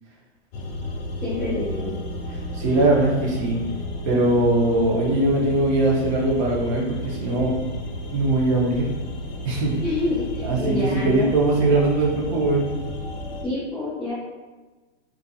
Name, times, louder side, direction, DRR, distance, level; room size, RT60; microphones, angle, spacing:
sound 1, 0.5-13.4, left 1 dB, 55° left, 0.5 m, -33 dB
voice 1, 1.2-1.9 9.8-11.3 13.4-14.1, left 1 dB, 5° right, -12 dB, 0.3 m, -27 dB
voice 2, 2.5-3.6 4.1-7.6 8.1-8.9 9.4-9.8 10.4-12.7, right 2 dB, 40° right, -3 dB, 0.7 m, -21 dB
2.5 x 2.1 x 2.7 m, 1.3 s
hypercardioid pair, 140°, 35 cm